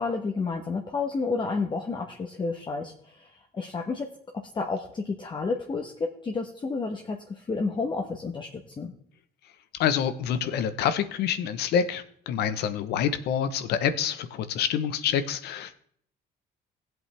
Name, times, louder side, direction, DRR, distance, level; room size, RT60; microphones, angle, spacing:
voice 1, 0.0-4.1 4.3-8.9, left 4 dB, 30° left, 3 dB, 1.2 m, -31 dB
voice 2, 9.8-15.8, left 8 dB, 75° left, 12 dB, 1.0 m, -27 dB
16.5 x 8.0 x 3.4 m, 0.64 s
cardioid pair, 110°, 17 cm